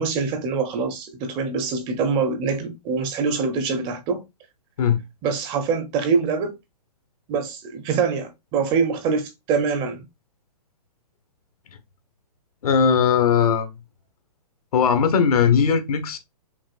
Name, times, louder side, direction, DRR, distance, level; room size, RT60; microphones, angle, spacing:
voice 1, 0.0-4.2 5.2-6.6 7.3-10.0, right 5 dB, 25° right, 0.8 m, -24 dB
voice 2, 12.6-13.7 14.7-16.2, left 7 dB, 65° left, 1.2 m, -19 dB
5.9 x 2.6 x 2.4 m
hypercardioid pair, 140°, 21 cm